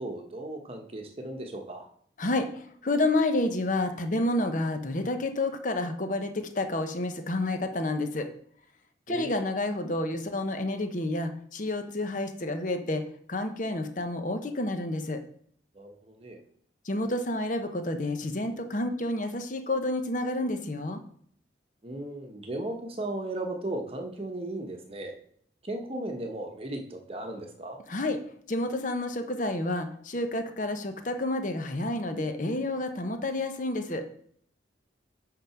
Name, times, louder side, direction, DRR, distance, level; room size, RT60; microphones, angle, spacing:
voice 1, 0.0-1.9 9.1-9.3 15.7-16.4 21.8-25.1 25.6-27.8, right 1 dB, 30° right, 3 dB, 1.1 m, -36 dB
voice 2, 2.2-8.3 9.1-13.0 13.3-15.2 16.8-21.0 27.9-28.2 28.5-34.0, left 2 dB, 45° left, 7 dB, 0.8 m, -29 dB
8.8 x 3.8 x 5.7 m, 0.62 s
head